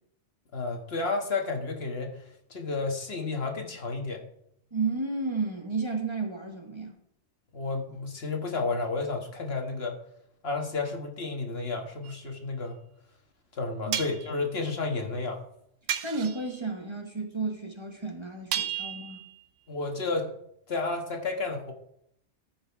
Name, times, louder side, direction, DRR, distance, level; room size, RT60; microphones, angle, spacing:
voice 1, 0.5-2.2 2.5-4.2 7.5-10.0 10.4-12.8 13.5-15.4 19.7-20.3 20.7-21.7, left 3 dB, 55° left, 3 dB, 1.7 m, -31 dB
voice 2, 4.7-6.9 13.9-14.0 16.0-19.2, right 4 dB, 25° right, 2 dB, 1.3 m, -32 dB
sound 1, 12.0-12.2 13.9-14.3 15.9-16.5 18.5-19.4, right 9 dB, 90° right, 1.1 m, -33 dB
13.5 x 5.6 x 4.6 m, 0.72 s
omnidirectional pair, 1.2 m